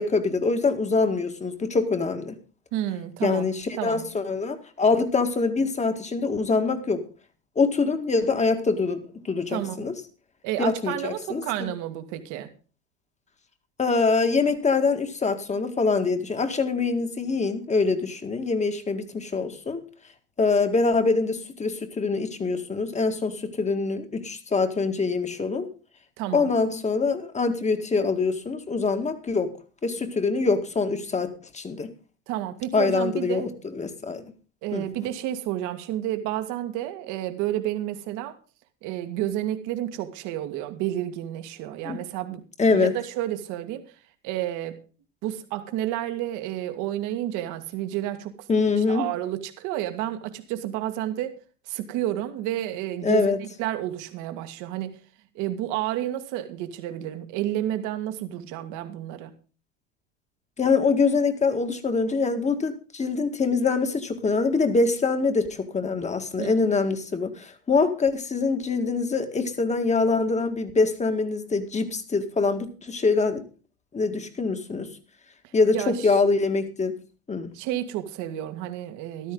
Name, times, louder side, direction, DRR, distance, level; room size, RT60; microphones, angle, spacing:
voice 1, 0.0-2.4 3.2-7.0 7.6-9.9 10.6-11.7 13.8-19.8 20.4-25.7 26.3-29.5 29.8-31.9 32.7-34.3 34.7-34.9 41.9-42.0 42.6-42.9 48.5-49.1 53.0-53.4 60.6-73.4 73.9-74.9 75.5-77.0 77.3-77.5, left 4 dB, 20° left, 2.0 m, -24 dB
voice 2, 2.7-3.5 3.8-4.0 9.5-9.8 10.4-12.5 26.2-26.5 32.3-33.5 34.6-38.3 38.8-42.4 42.7-43.8 44.2-44.8 45.2-48.5 48.8-51.4 51.7-55.0 55.3-59.3 66.4-66.5 75.7-76.1 77.5-79.3, right 13 dB, 55° right, 2.0 m, -30 dB
14.0 x 12.5 x 3.9 m
hypercardioid pair, 85°, 35 cm